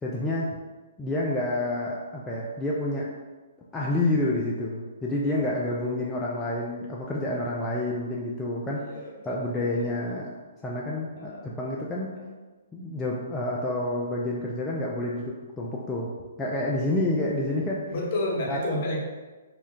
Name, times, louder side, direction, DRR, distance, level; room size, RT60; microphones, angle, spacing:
voice 1, 0.0-0.5 1.0-3.1 3.7-8.9 9.3-10.3 10.6-12.1 12.7-16.1 16.4-17.8 18.5-18.6, left 1 dB, 10° left, -5 dB, 0.4 m, -28 dB
voice 2, 5.4-5.9 8.8-10.1 11.2-11.9 12.1-12.3 17.9-19.0, left 1 dB, 45° left, -3 dB, 0.9 m, -33 dB
2.7 x 2.3 x 3.2 m, 1.3 s
hypercardioid pair, 135°, 0 cm